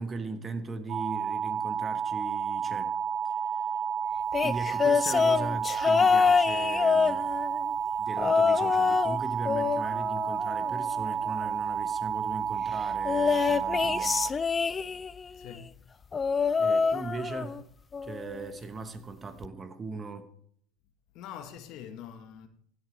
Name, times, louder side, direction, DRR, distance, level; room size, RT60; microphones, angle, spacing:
voice 1, 0.0-3.0 3.2-3.6 4.4-7.3 8.0-14.2 16.6-17.6 18.0-20.3, right 3 dB, 25° right, 1.1 m, -39 dB
sound 1, 0.9-14.3, right 7 dB, 50° right, 0.6 m, -31 dB
sound 2, 4.3-7.6 8.2-9.2 9.4-11.0 13.0-15.2 16.1-17.6 17.9-18.3 19.4-19.5, left 5 dB, 25° left, 0.3 m, -26 dB
voice 2, 15.3-15.7 21.1-22.5, left 9 dB, 60° left, 1.2 m, -44 dB
15.5 x 7.8 x 3.3 m
supercardioid pair, 110°, 0 cm